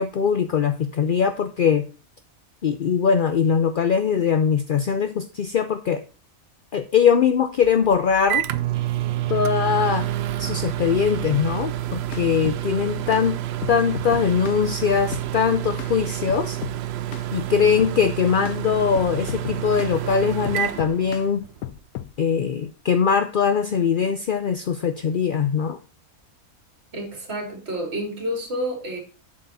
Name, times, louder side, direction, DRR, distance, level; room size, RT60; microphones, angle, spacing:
voice 1, 0.0-1.8 2.6-6.0 6.7-8.5 9.3-10.1 10.4-13.4 13.7-16.6 17.3-21.4 22.2-25.8, left 7 dB, 55° left, 10 dB, 0.5 m, -21 dB
Microwave oven, 7.6-21.6, right 13 dB, 65° right, 0.6 m, -28 dB
sound 1, 11.8-12.6 13.1-13.3 13.6-14.6 15.1-15.3 15.8-15.9 16.3-16.8 17.1-17.3 17.8-18.0 18.4-18.6 18.9-20.0 20.4-21.3 21.6-22.1, left 13 dB, 80° left, 1.0 m, -35 dB
voice 2, 26.9-29.0, equal, 45° right, 2 dB, 3.0 m, -29 dB
7.8 x 7.7 x 4.1 m, 0.35 s
omnidirectional pair, 1.5 m